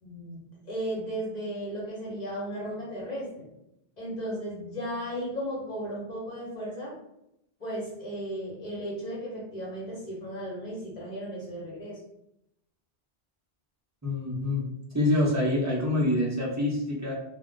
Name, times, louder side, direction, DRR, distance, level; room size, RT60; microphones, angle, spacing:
voice 1, 0.0-3.5 4.0-6.9 7.6-12.0, equal, 40° left, -5 dB, 1.1 m, -35 dB
voice 2, 14.0-14.7 14.9-17.1, left 1 dB, 20° right, -3 dB, 0.5 m, -26 dB
2.4 x 2.2 x 3.6 m, 0.82 s
omnidirectional pair, 1.1 m